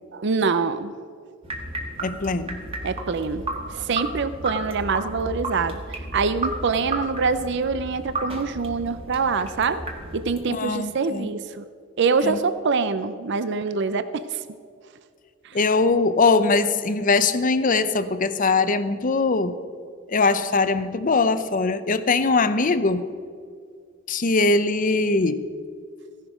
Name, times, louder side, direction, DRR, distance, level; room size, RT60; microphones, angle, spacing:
voice 1, 0.1-1.0 2.8-3.4 3.7-9.8 10.1-11.7 12.0-14.4 15.4-15.6, right 4 dB, 60° right, 12 dB, 0.5 m, -25 dB
sound 1, 1.4-10.4, right 2 dB, 30° right, 1.6 m, -33 dB
voice 2, 2.0-2.6 10.5-11.3 12.2-12.4 15.5-19.6 20.1-23.1 24.1-25.4, left 3 dB, 40° left, 13 dB, 0.6 m, -21 dB
15.5 x 11.0 x 5.0 m, 2.1 s
head